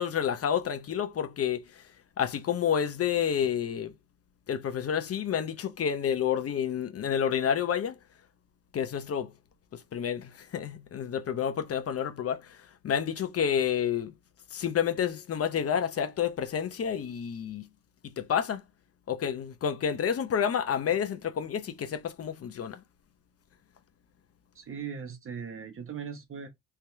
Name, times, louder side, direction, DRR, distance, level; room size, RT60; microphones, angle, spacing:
voice 1, 0.0-1.8 2.2-3.9 4.5-8.0 8.7-9.3 9.7-12.6 12.8-14.1 14.5-17.7 18.0-18.6 19.1-22.8, left 8 dB, 50° left, 0.8 m, -29 dB
voice 2, 24.5-26.5, right 7 dB, 45° right, 1.3 m, -39 dB
3.5 x 2.9 x 3.4 m
cardioid pair, 90°, 30 cm